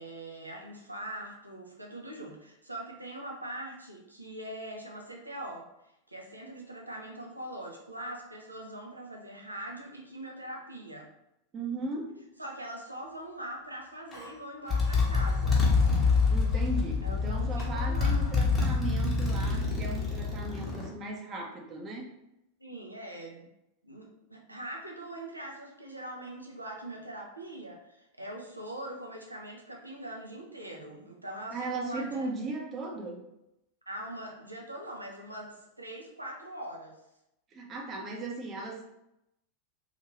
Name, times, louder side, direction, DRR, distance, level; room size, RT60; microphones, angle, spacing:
voice 1, 0.0-5.7 6.1-11.1 12.4-15.7 17.0-18.3 22.6-23.5 23.8-32.3 33.9-37.0, right 1 dB, 85° right, 0 dB, 0.5 m, -42 dB
voice 2, 11.5-12.1 16.3-22.1 31.5-33.3 37.5-38.9, right 2 dB, 25° right, 0 dB, 0.6 m, -37 dB
Motorcycle, 14.1-14.3 14.7-20.9, left 4 dB, 15° left, 0.8 m, -26 dB
2.7 x 2.4 x 2.9 m, 0.84 s
figure-of-eight pair, 90°, 0 cm